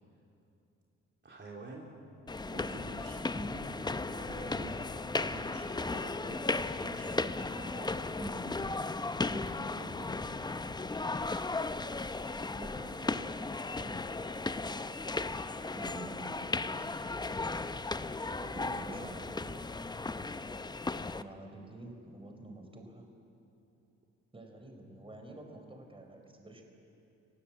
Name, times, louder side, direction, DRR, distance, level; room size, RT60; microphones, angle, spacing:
voice 1, 1.2-1.9 2.4-3.3 4.1-8.0 9.8-10.6 13.8-14.0 18.3-19.3, right 2 dB, 35° right, -2 dB, 3.5 m, -48 dB
sound 1, 2.3-21.2, left 3 dB, 15° left, 0.7 m, -36 dB
voice 2, 12.6-13.3 15.7-17.0 18.5-19.6 21.1-23.1 24.3-26.6, right 1 dB, 20° right, 4 dB, 4.2 m, -47 dB
29.0 x 17.5 x 8.5 m, 2.8 s
cardioid pair, 90°, 30 cm